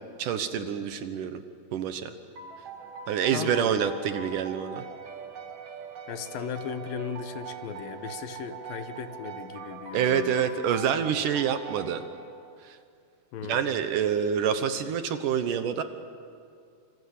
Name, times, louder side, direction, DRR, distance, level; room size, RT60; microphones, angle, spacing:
voice 1, 0.2-1.4 1.7-2.1 3.1-4.8 9.9-12.0 12.6-12.8 13.4-15.8, right 8 dB, 70° right, 9 dB, 2.4 m, -27 dB
sound 1, 2.4-12.7, right 6 dB, 50° right, 2.4 m, -42 dB
voice 2, 3.3-3.8 6.1-10.3 13.3-13.7, left 8 dB, 75° left, 10 dB, 2.8 m, -37 dB
26.5 x 26.0 x 8.5 m, 2.3 s
omnidirectional pair, 4.3 m